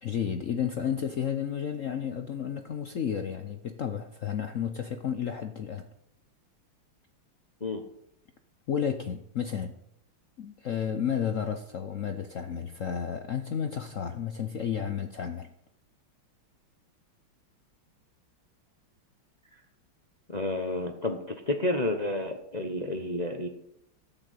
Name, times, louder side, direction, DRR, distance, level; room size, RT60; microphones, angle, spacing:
voice 1, 0.0-5.9 8.7-9.8 10.4-15.5, left 8 dB, 70° left, 7 dB, 0.7 m, -32 dB
voice 2, 20.3-23.5, left 2 dB, 40° left, 5 dB, 0.6 m, -30 dB
14.0 x 5.9 x 8.3 m, 0.75 s
omnidirectional pair, 2.3 m